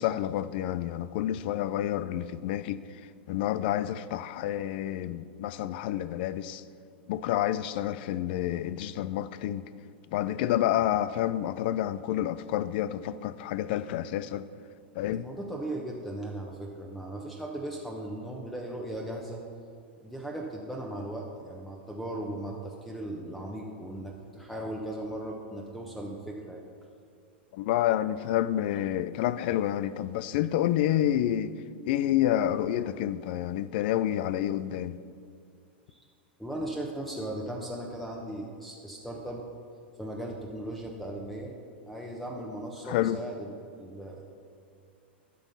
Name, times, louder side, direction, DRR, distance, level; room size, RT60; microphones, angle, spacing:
voice 1, 0.0-2.8 3.3-6.6 7.1-9.6 10.1-14.5 15.0-15.3 27.5-31.5 31.9-35.0 42.8-43.2, left 12 dB, 60° left, 0.4 m, -29 dB
voice 2, 15.1-19.4 20.0-26.7 35.9-36.0 36.4-39.4 40.0-41.5 41.9-44.2, right 1 dB, ahead, 1.0 m, -37 dB
11.5 x 6.2 x 5.4 m
hypercardioid pair, 115°, 6 cm